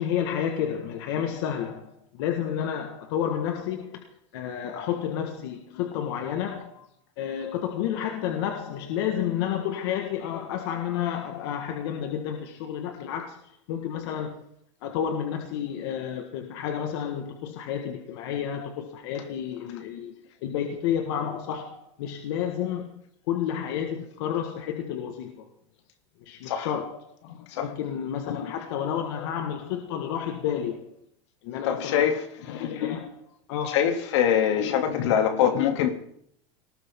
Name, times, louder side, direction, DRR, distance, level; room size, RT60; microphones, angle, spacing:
voice 1, 0.0-4.1 4.3-6.8 7.2-14.4 14.8-20.1 20.4-22.9 23.3-25.5 26.3-30.9 31.4-32.1 32.4-33.8 34.6-35.9, left 9 dB, 55° left, 1.7 m, -31 dB
voice 2, 31.7-32.2 32.5-32.6 33.7-35.9, left 9 dB, 75° left, 2.9 m, -24 dB
19.0 x 18.5 x 3.8 m
supercardioid pair, 170°, 15 cm